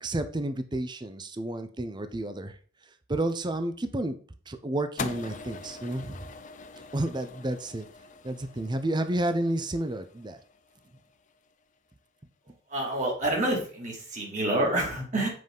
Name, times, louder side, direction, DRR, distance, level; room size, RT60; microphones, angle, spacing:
voice 1, 0.0-2.6 3.1-4.2 4.5-6.3 6.9-7.9 8.2-10.4, right 1 dB, 20° right, 9 dB, 0.6 m, -31 dB
sound 1, 5.0-11.3, left 5 dB, 40° left, 0.6 m, -43 dB
voice 2, 12.7-15.3, right 1 dB, 40° right, -1 dB, 2.5 m, -28 dB
7.7 x 5.4 x 3.9 m, 0.43 s
head